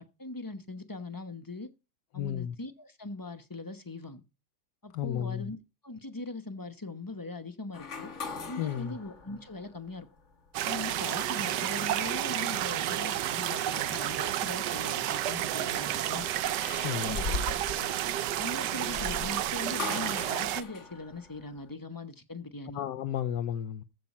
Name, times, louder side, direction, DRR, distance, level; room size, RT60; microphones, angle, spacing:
voice 1, 0.0-1.7 2.1-4.2 4.8-5.6 5.8-8.1 8.5-10.1 10.6-16.3 17.0-17.3 17.7-17.9 18.4-22.8, left 2 dB, 20° left, 0.6 m, -40 dB
voice 2, 2.1-2.6 4.9-5.5 8.6-9.0 16.8-17.2 22.7-23.8, left 10 dB, 75° left, 1.3 m, -33 dB
sound 1, 7.7-10.3 10.9-11.0 13.5-14.6 16.0-21.7, left 4 dB, 40° left, 1.7 m, -41 dB
sound 2, 10.5-20.6, right 12 dB, 70° right, 1.2 m, -31 dB
14.5 x 6.0 x 4.3 m
omnidirectional pair, 2.0 m